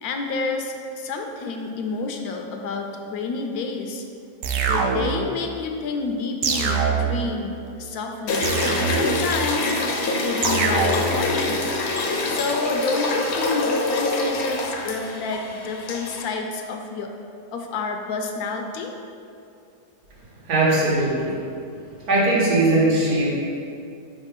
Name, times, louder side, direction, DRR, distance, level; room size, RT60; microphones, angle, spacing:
voice 1, 0.0-4.0 4.7-9.7 10.2-11.7 12.3-17.1 17.5-18.9, left 4 dB, 80° left, 3 dB, 1.1 m, -29 dB
sound 1, 4.4-5.3 6.4-7.3 8.4-9.3 10.4-11.3, right 5 dB, 65° right, 0.8 m, -24 dB
sound 2, 8.3-16.3, left 2 dB, 60° left, 0.8 m, -25 dB
voice 2, 20.5-21.4 22.0-23.3, right 2 dB, 85° right, -6 dB, 1.9 m, -19 dB
4.9 x 4.0 x 5.2 m, 2.5 s
omnidirectional pair, 1.6 m